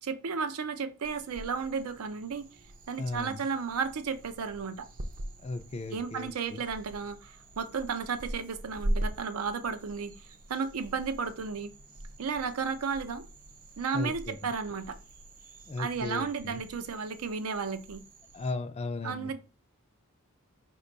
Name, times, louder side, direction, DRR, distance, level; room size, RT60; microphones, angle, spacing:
voice 1, 0.0-2.4 2.9-4.9 5.9-10.1 10.5-11.7 12.2-13.2 13.8-15.0 15.8-18.0 19.0-19.4, right 5 dB, 85° right, 0.5 m, -33 dB
sound 1, 1.0-18.5, right 1 dB, 40° right, 0.4 m, -42 dB
voice 2, 3.0-3.4 5.4-6.6 13.9-14.4 15.7-16.6 18.3-19.3, left 3 dB, 30° left, 0.3 m, -36 dB
5.1 x 2.2 x 3.9 m
head